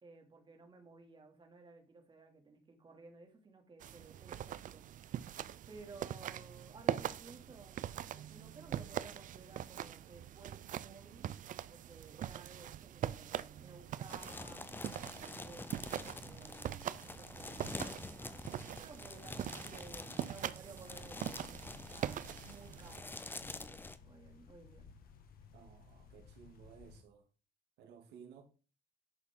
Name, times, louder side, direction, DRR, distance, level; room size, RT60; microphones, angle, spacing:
voice 1, 0.0-4.8 5.7-11.3 11.7-15.8 16.2-17.7 18.2-24.9, right 3 dB, 30° right, 2.9 m, -56 dB
sound 1, 3.8-23.0, right 11 dB, 50° right, 0.5 m, -43 dB
sound 2, 14.1-24.0, left 2 dB, 10° left, 0.7 m, -47 dB
sound 3, 20.9-27.0, left 6 dB, 60° left, 2.0 m, -58 dB
voice 2, 25.5-27.2 27.8-28.4, right 7 dB, 85° right, 2.9 m, -56 dB
11.0 x 6.5 x 3.9 m
cardioid pair, 110°, 17 cm